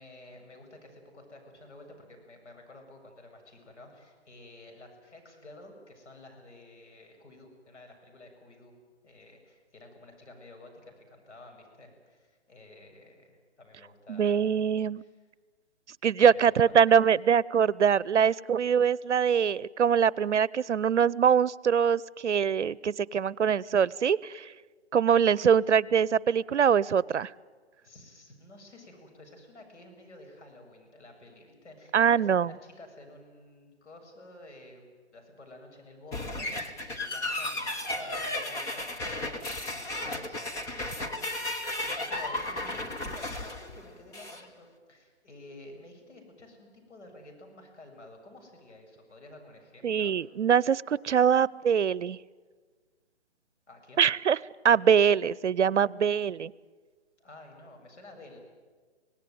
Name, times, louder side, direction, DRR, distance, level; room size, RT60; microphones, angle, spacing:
voice 1, 0.0-8.8 9.0-14.5 15.0-15.1 16.3-16.7 25.5-25.6 27.8-50.1 53.7-54.1 57.2-58.4, left 2 dB, 80° left, 3 dB, 7.7 m, -51 dB
voice 2, 14.1-15.0 16.0-24.5 24.9-27.3 31.9-32.5 49.8-52.2 54.0-54.4 54.6-56.5, right 7 dB, 85° right, 23 dB, 0.7 m, -23 dB
sound 1, 36.1-44.4, left 2 dB, 10° left, 1.0 m, -34 dB
25.5 x 18.5 x 9.4 m, 1.4 s
hypercardioid pair, 150°, 34 cm